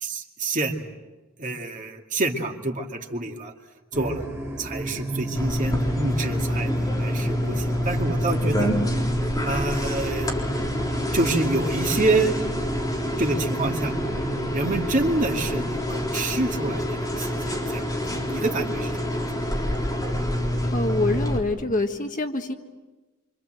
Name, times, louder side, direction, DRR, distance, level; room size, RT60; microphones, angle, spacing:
voice 1, 0.0-0.8 1.4-3.5 3.9-4.2 4.6-8.7 9.4-10.3 11.1-12.3 13.1-13.9 14.5-19.2, right 2 dB, 40° right, 2 dB, 2.2 m, -27 dB
sound 1, 3.9-14.4, right 1 dB, 10° right, 3.4 m, -34 dB
sound 2, 5.4-21.4, equal, 20° left, 4.0 m, -27 dB
voice 2, 20.6-22.5, left 2 dB, 40° left, 5 dB, 1.6 m, -26 dB
27.5 x 26.0 x 7.8 m, 1.2 s
head